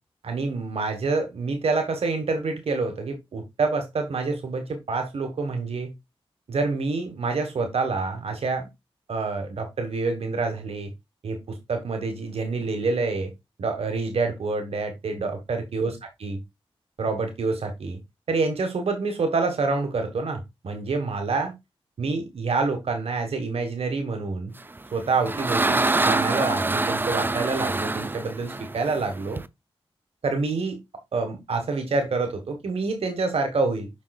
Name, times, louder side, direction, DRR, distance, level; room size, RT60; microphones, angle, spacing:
voice 1, 0.2-5.9 6.5-8.7 9.1-10.9 11.2-13.3 13.6-16.4 17.0-18.0 18.3-21.5 22.0-24.5 24.9-29.4 30.2-30.8 31.1-33.9, right 3 dB, 80° right, 1.5 m, -27 dB
sound 1, 24.8-29.5, right 2 dB, 20° right, 0.5 m, -25 dB
7.2 x 6.2 x 2.4 m
wide cardioid pair, 80°, 10 cm